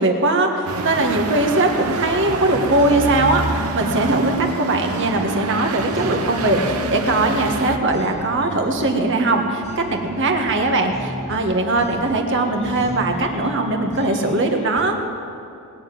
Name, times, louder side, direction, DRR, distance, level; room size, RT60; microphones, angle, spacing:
voice 1, 0.0-14.9, right 2 dB, 55° right, 3 dB, 1.7 m, -20 dB
sound 1, 0.7-7.8, right 3 dB, 75° right, 1.0 m, -26 dB
sound 2, 1.7-14.8, left 1 dB, 30° left, 1.4 m, -34 dB
20.0 x 7.0 x 9.4 m, 2.7 s
head